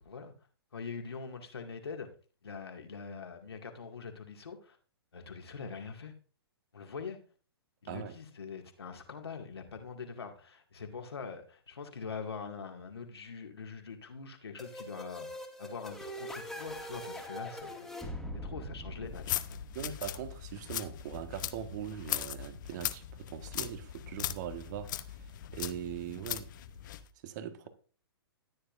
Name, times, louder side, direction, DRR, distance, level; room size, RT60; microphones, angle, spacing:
voice 1, 0.7-2.1 2.4-4.8 5.1-6.1 6.7-7.2 7.8-15.3 15.6-17.9 18.3-19.6, left 5 dB, 75° left, 2.2 m, -43 dB
sound 1, 14.6-20.2, equal, ahead, 2.0 m, -43 dB
sound 2, 19.1-27.1, left 12 dB, 50° left, 0.9 m, -39 dB
voice 2, 19.7-26.5 27.2-27.7, right 9 dB, 45° right, 1.6 m, -41 dB
14.0 x 9.9 x 2.6 m
figure-of-eight pair, 120°, 13 cm